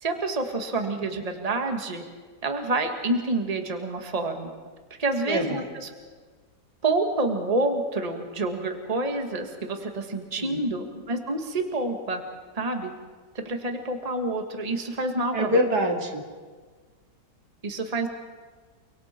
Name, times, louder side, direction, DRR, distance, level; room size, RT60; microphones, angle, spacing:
voice 1, 0.0-2.0 2.4-4.5 5.0-5.9 6.8-12.2 12.5-12.9 13.3-15.6 17.6-18.1, right 2 dB, 25° right, 4 dB, 1.7 m, -28 dB
voice 2, 5.3-5.6 10.4-10.6 15.3-16.2, equal, 75° right, 2 dB, 2.9 m, -25 dB
30.0 x 23.0 x 4.4 m, 1.5 s
omnidirectional pair, 1.7 m